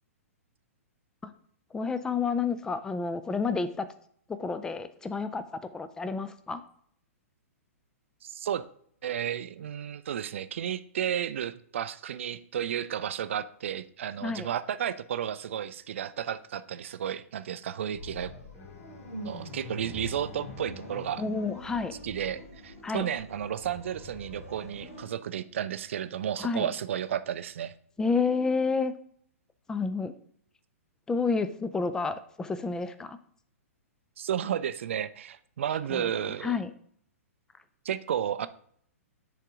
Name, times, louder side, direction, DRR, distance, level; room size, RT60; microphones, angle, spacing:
voice 1, 1.7-3.9 4.3-5.4 5.7-6.6 14.2-14.5 21.2-21.9 22.8-23.1 26.4-26.7 28.0-28.9 29.7-30.1 31.1-33.2 35.9-36.1 36.4-36.7, left 4 dB, 10° left, 13 dB, 0.4 m, -30 dB
voice 2, 8.2-8.6 9.0-18.3 19.2-21.2 22.0-27.7 34.2-36.6 37.9-38.5, right 9 dB, 55° right, 14 dB, 0.4 m, -32 dB
sound 1, 17.9-25.1, left 1 dB, 75° left, 2.3 m, -44 dB
Bowed string instrument, 18.5-22.5, left 6 dB, 30° left, 0.7 m, -53 dB
10.0 x 3.8 x 3.6 m, 0.63 s
figure-of-eight pair, 115°, 8 cm